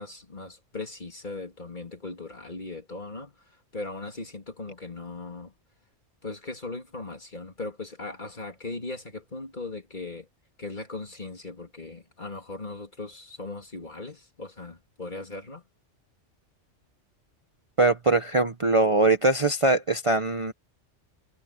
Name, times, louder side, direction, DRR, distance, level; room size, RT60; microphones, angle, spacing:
voice 1, 0.0-3.3 3.7-5.5 6.2-10.3 10.6-15.6, left 3 dB, 40° left, 3.0 m, -38 dB
voice 2, 17.8-20.5, right 2 dB, 30° right, 0.9 m, -22 dB
omnidirectional pair, 1.2 m